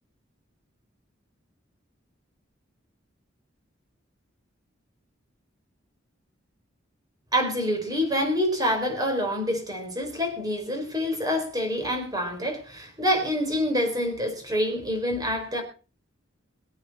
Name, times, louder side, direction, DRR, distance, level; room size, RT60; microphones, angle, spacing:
voice 1, 7.3-15.6, equal, 20° right, 4 dB, 4.5 m, -26 dB
24.0 x 8.7 x 4.3 m, 0.35 s
head